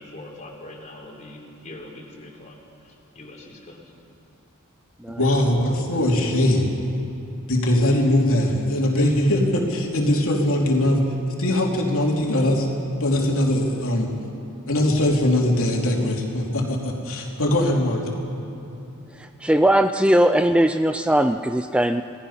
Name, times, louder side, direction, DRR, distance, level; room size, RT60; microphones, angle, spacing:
voice 1, 0.0-3.8, left 1 dB, 35° left, -1 dB, 3.6 m, -42 dB
voice 2, 5.2-6.7 7.5-11.0 11.4-12.7 13.0-14.1 14.7-18.0, left 1 dB, 65° left, -1 dB, 3.2 m, -21 dB
voice 3, 19.1-22.0, right 1 dB, 5° right, 8 dB, 0.4 m, -19 dB
28.0 x 18.5 x 5.8 m, 2.9 s
head